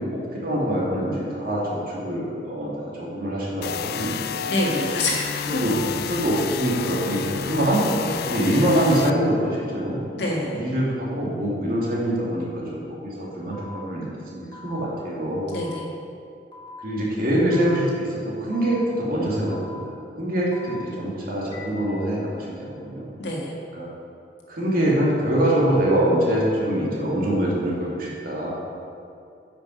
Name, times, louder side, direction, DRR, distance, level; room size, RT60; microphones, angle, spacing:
voice 1, 0.0-4.5 5.5-10.0 10.5-15.5 16.8-23.1 23.7-23.9 24.5-28.5, right 1 dB, 55° right, -5 dB, 2.2 m, -24 dB
sound 1, 3.6-9.1, left 8 dB, 60° left, 0.3 m, -30 dB
voice 2, 4.5-5.6 10.1-10.6 15.5-15.8 23.2-23.5, left 1 dB, 75° left, -2 dB, 1.8 m, -26 dB
sound 2, 13.5-13.7 14.5-14.7 15.5-15.7 16.5-16.7 17.5-17.7 18.5-18.7 19.5-19.7 20.5-20.7 21.5-21.7, left 4 dB, 30° left, 1.5 m, -43 dB
8.7 x 6.0 x 5.2 m, 2.6 s
head